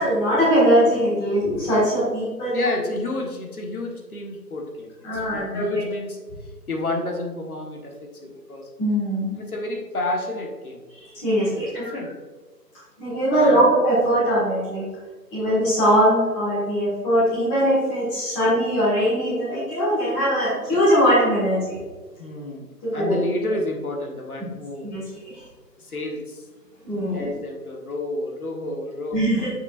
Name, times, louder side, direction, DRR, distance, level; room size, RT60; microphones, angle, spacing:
voice 1, 0.0-2.6 5.0-5.9 8.8-9.3 11.0-12.0 13.0-14.8 15.3-21.8 22.8-23.2 24.8-25.4 26.8-27.3 29.1-29.5, equal, 5° left, -10 dB, 1.5 m, -21 dB
voice 2, 2.5-6.2 6.7-8.7 9.4-10.8 11.5-12.1 13.3-13.7 22.2-24.9 25.8-26.4 27.1-29.2, left 2 dB, 60° left, 1 dB, 1.5 m, -30 dB
7.3 x 6.9 x 2.5 m, 1.4 s
figure-of-eight pair, 150°, 49 cm